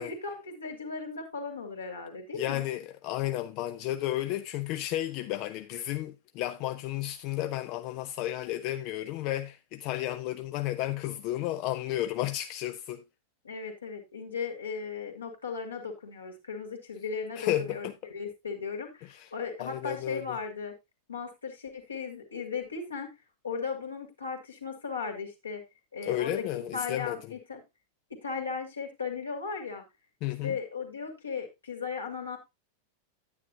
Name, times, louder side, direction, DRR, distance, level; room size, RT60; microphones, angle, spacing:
voice 1, 0.0-2.6 13.4-20.7 21.1-23.1 23.4-25.6 25.9-27.6 28.1-29.8 30.4-32.4, left 5 dB, 75° left, 2.5 m, -36 dB
voice 2, 2.3-13.0 17.4-17.9 19.1-19.3 19.6-20.2 26.0-27.2 30.2-30.6, left 14 dB, 45° left, 0.5 m, -32 dB
9.5 x 9.5 x 2.7 m
figure-of-eight pair, 90°, 0 cm